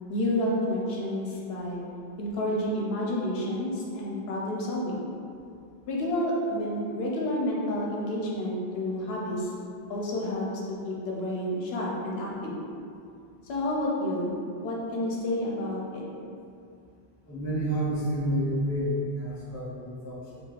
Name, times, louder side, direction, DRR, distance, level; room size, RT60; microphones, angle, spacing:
voice 1, 0.1-1.8 2.2-5.1 5.9-9.5 9.9-12.6 13.5-14.3 14.6-16.0, left 1 dB, 80° left, -4 dB, 0.8 m, -30 dB
voice 2, 17.3-20.4, equal, 25° left, -7 dB, 0.4 m, -30 dB
3.0 x 2.3 x 2.3 m, 2.5 s
omnidirectional pair, 1.0 m